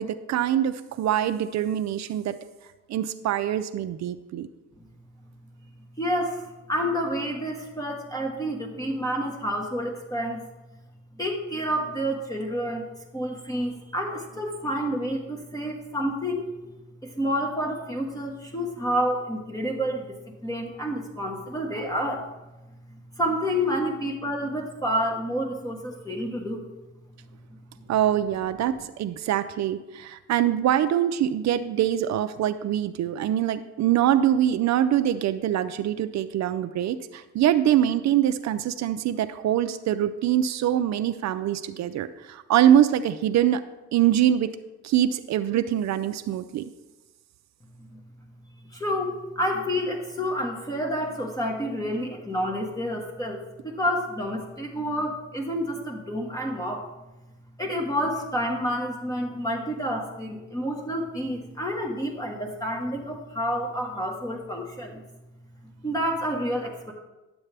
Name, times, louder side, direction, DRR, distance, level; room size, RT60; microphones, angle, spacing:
voice 1, 0.0-2.4 2.9-4.5 27.9-43.6 43.9-44.5 44.8-46.6, right 11 dB, 65° right, 10 dB, 0.5 m, -24 dB
voice 2, 6.0-10.4 11.2-12.8 13.1-16.5 17.0-22.3 23.2-26.6 47.9-48.0 48.7-56.9 57.6-65.0 65.8-66.9, equal, 10° left, -1 dB, 1.2 m, -29 dB
11.0 x 7.1 x 3.3 m, 1.1 s
cardioid pair, 90°, 30 cm